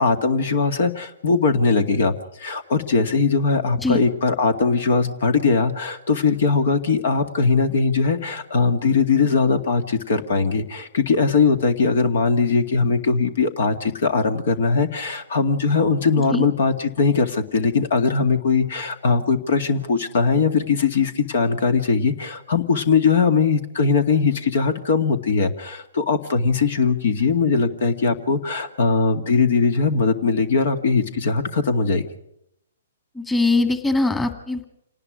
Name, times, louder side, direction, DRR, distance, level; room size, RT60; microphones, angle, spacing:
voice 1, 0.0-32.1, left 4 dB, 60° left, 9 dB, 2.2 m, -20 dB
voice 2, 33.2-34.7, left 2 dB, 10° left, 7 dB, 1.9 m, -21 dB
27.5 x 19.0 x 5.0 m, 0.78 s
figure-of-eight pair, 125°, 0 cm